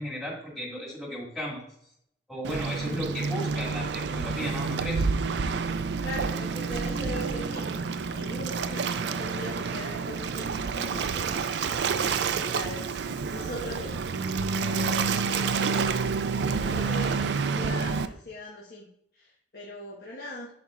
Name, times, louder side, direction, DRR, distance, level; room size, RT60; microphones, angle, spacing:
voice 1, 0.0-1.6 2.3-5.1 15.3-15.5, equal, ahead, -4 dB, 1.9 m, -35 dB
Waves surf, 2.4-18.1, right 5 dB, 75° right, 0.4 m, -29 dB
voice 2, 6.0-7.8 8.1-11.6 11.9-16.1 16.5-18.9 19.1-20.5, left 1 dB, 60° left, -5 dB, 1.2 m, -41 dB
10.5 x 4.2 x 2.4 m, 0.73 s
head